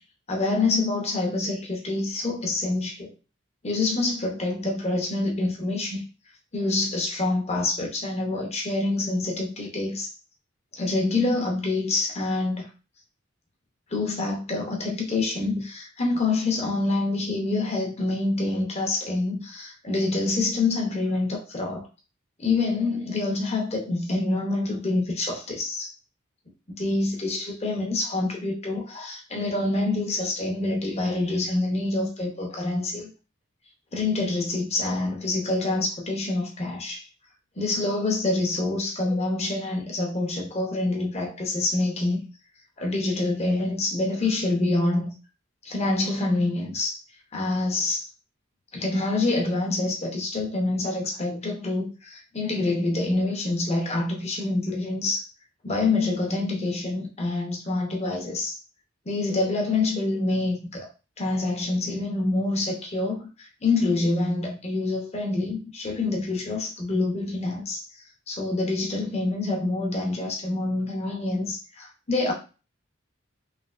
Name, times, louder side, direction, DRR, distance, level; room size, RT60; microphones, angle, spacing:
voice 1, 0.3-3.1 3.6-6.0 6.5-10.1 10.8-12.6 13.9-21.9 22.4-25.9 26.8-33.1 33.9-37.0 37.6-42.2 42.8-45.1 45.6-47.0 47.3-48.1 48.7-55.2 55.6-58.6 59.1-60.9 61.2-67.8 68.3-72.3, left 2 dB, 35° left, 0.8 m, -26 dB
3.3 x 2.7 x 2.4 m
head